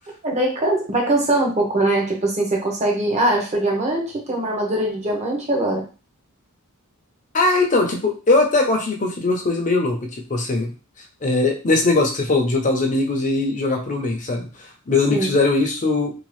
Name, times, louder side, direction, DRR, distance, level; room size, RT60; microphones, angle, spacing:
voice 1, 0.2-5.8 15.1-15.3, right 1 dB, 30° right, 0 dB, 0.8 m, -21 dB
voice 2, 7.3-10.7 11.2-16.1, left 3 dB, 35° left, 2 dB, 0.6 m, -20 dB
2.7 x 2.3 x 3.1 m, 0.34 s
head